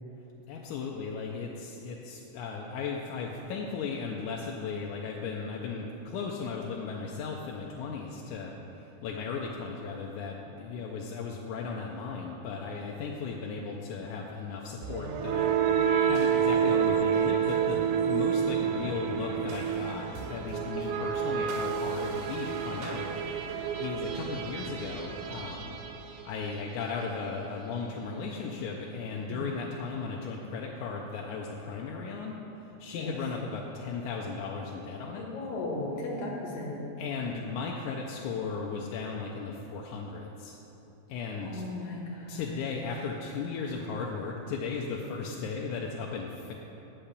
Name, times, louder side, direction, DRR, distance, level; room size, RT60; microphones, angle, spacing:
voice 1, 0.5-15.5 16.1-23.1 23.4-25.7 26.2-32.4 32.8-35.2 37.0-40.6 41.1-41.6 42.3-46.5, left 5 dB, 90° left, -1 dB, 2.1 m, -36 dB
sound 1, 14.8-26.7, right 7 dB, 90° right, 2.1 m, -29 dB
voice 2, 29.3-29.6 32.9-33.1 35.2-36.8 41.4-42.8, left 2 dB, 70° left, -3 dB, 2.7 m, -36 dB
8.8 x 5.7 x 6.7 m, 2.9 s
omnidirectional pair, 3.5 m